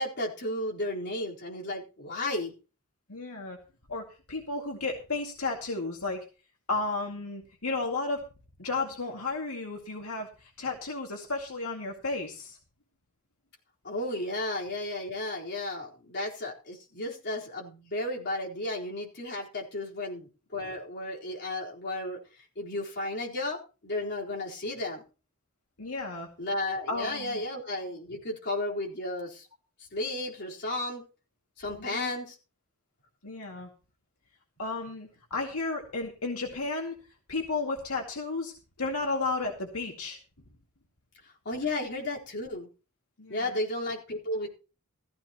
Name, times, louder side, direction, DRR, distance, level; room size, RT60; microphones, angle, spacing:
voice 1, 0.0-2.5 13.8-22.2 22.6-25.0 26.4-29.5 29.9-31.0 31.6-32.4 41.4-42.7 43.3-44.5, left 1 dB, 50° left, -3 dB, 4.2 m, -33 dB
voice 2, 3.1-3.6 3.9-6.2 6.7-8.2 8.6-12.6 25.8-26.3 26.9-27.4 31.7-32.1 33.2-33.7 34.6-36.9 37.3-40.2 43.2-43.6, left 3 dB, 80° left, 1 dB, 2.2 m, -33 dB
15.5 x 15.0 x 3.0 m, 0.34 s
head